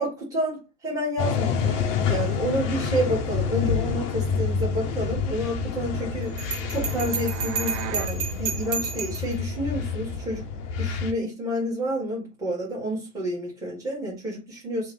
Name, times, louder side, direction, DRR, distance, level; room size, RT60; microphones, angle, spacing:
voice 1, 0.0-6.3 6.7-14.9, equal, 10° right, 1.6 m, -29 dB
sound 1, 1.2-11.1, left 6 dB, 30° left, 0.5 m, -28 dB
sound 2, 5.6-8.2, right 10 dB, 60° right, 0.5 m, -38 dB
Bell, 6.4-9.3, right 6 dB, 40° right, 1.0 m, -31 dB
3.1 x 2.6 x 3.7 m
hypercardioid pair, 115°, 39 cm